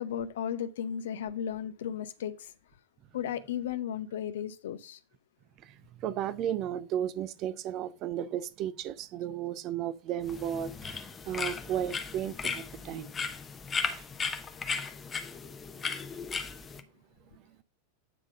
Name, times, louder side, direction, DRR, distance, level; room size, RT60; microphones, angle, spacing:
voice 1, 0.0-2.5 3.1-5.0, left 9 dB, 60° left, 0.7 m, -35 dB
voice 2, 5.6-13.1 13.9-14.1, right 10 dB, 35° right, 0.6 m, -34 dB
sound 1, 10.2-16.8, left 5 dB, 20° left, 0.8 m, -36 dB
9.2 x 3.7 x 5.2 m
figure-of-eight pair, 90°, 0 cm